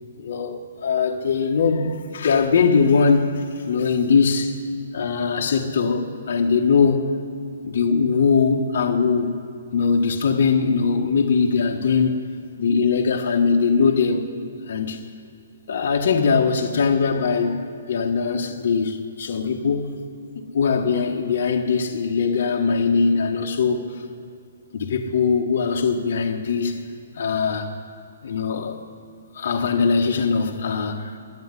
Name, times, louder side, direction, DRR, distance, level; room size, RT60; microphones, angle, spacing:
voice 1, 0.2-4.5 4.9-7.1 7.6-9.4 9.7-12.2 12.6-14.2 14.7-15.1 15.7-17.6 17.9-20.0 20.5-23.8 24.7-26.8 27.1-27.7 28.2-28.8 29.3-31.2, left 5 dB, 55° left, 1 dB, 1.4 m, -21 dB
12.0 x 10.0 x 9.7 m, 2.5 s
hypercardioid pair, 170°, 0 cm